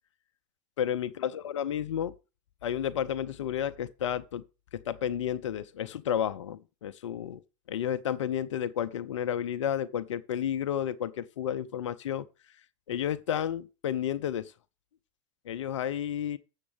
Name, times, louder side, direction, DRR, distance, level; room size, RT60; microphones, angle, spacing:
voice 1, 0.8-2.1 2.6-4.4 4.7-7.4 7.7-12.3 12.9-14.5 15.5-16.4, left 9 dB, 70° left, 0.6 m, -31 dB
7.3 x 6.8 x 5.2 m
figure-of-eight pair, 75°, 16 cm